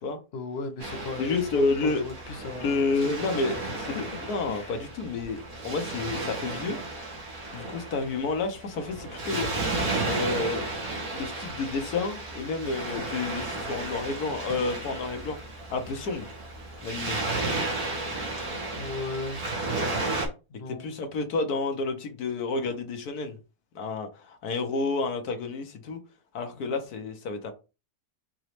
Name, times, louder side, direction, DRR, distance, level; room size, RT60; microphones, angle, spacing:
voice 1, 0.3-4.2 4.5-4.8 18.7-19.4 20.5-20.9 26.5-26.7, left 4 dB, 50° left, 0.9 m, -37 dB
Waves surf, 0.8-20.3, right 2 dB, 70° right, 2.0 m, -33 dB
voice 2, 1.2-2.0 2.6-3.6 3.9-6.8 7.5-9.5 10.0-10.6 11.1-15.4 15.7-16.3 16.8-17.2 20.8-23.4 23.7-26.0 26.3-27.5, left 3 dB, 80° left, 1.5 m, -30 dB
5.4 x 3.0 x 3.2 m
omnidirectional pair, 1.6 m